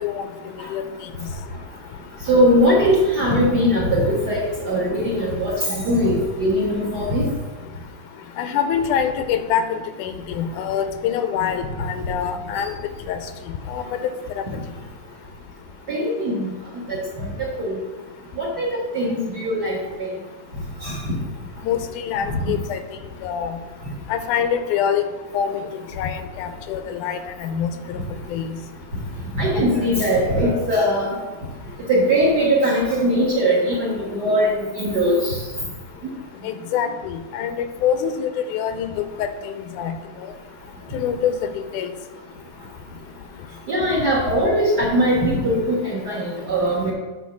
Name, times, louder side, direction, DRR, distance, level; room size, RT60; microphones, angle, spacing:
voice 1, 2.3-7.3 15.9-16.5 16.9-17.3 17.6-17.8 18.4-19.8 20.8-21.0 22.3-22.4 29.3-31.1 31.9-35.4 43.7-46.9, equal, 45° right, -4 dB, 1.4 m, -20 dB
voice 2, 8.4-12.8 13.1-13.2 13.7-13.8 14.4-14.5 21.6-22.8 23.2-23.6 24.1-25.0 25.3-25.7 26.0-28.0 28.3-28.6 36.4-40.0 40.9-41.9, left 8 dB, 90° left, 9 dB, 2.1 m, -25 dB
9.9 x 3.8 x 6.1 m, 1.2 s
omnidirectional pair, 3.6 m